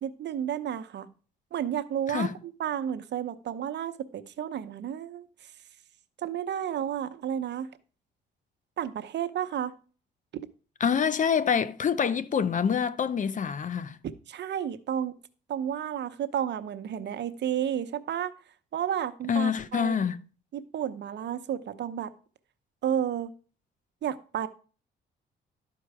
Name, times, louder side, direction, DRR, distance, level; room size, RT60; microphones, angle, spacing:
voice 1, 0.0-1.1 1.5-5.3 6.2-7.7 8.8-9.8 14.3-15.2 15.5-18.3 18.7-20.0 20.5-22.1 22.8-23.3 24.0-24.5, right 9 dB, 60° right, 0.8 m, -31 dB
voice 2, 10.8-14.0 19.3-20.2, left 7 dB, 40° left, 0.6 m, -26 dB
12.0 x 4.7 x 4.7 m
cardioid pair, 90°, 20 cm